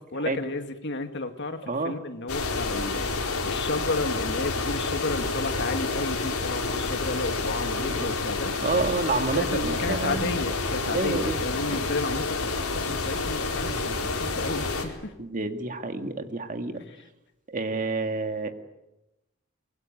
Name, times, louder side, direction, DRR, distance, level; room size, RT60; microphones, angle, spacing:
voice 1, 0.1-8.6 9.3-15.1, left 2 dB, 55° left, 7 dB, 2.3 m, -32 dB
voice 2, 1.6-2.0 7.8-8.1 8.6-10.4 10.8-11.8 15.2-16.8 17.5-18.5, right 3 dB, 35° right, 7 dB, 2.1 m, -29 dB
sound 1, 2.3-14.9, left 3 dB, 80° left, 4.4 m, -29 dB
24.5 x 22.5 x 9.2 m, 0.93 s
head